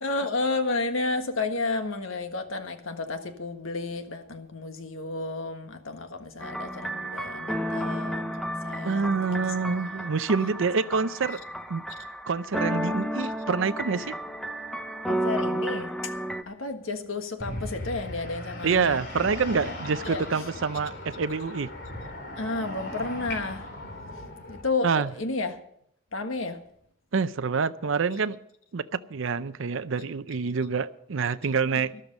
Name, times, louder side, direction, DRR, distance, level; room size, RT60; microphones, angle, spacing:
voice 1, 0.0-9.3 9.6-9.8 15.0-16.1 16.5-19.0 19.7-19.8 20.0-20.2 22.4-23.7 24.5-25.6 26.1-26.6 31.9-32.0, left 3 dB, 85° left, 1.6 m, -32 dB
sound 1, 6.4-16.4, equal, ahead, 0.7 m, -32 dB
voice 2, 8.8-11.4 11.7-11.8 12.3-14.2 18.6-21.7 24.8-25.1 27.1-28.4 28.7-31.9, right 5 dB, 75° right, 0.5 m, -27 dB
sound 2, 17.4-24.6, left 1 dB, 55° left, 3.2 m, -38 dB
13.0 x 12.0 x 5.4 m
head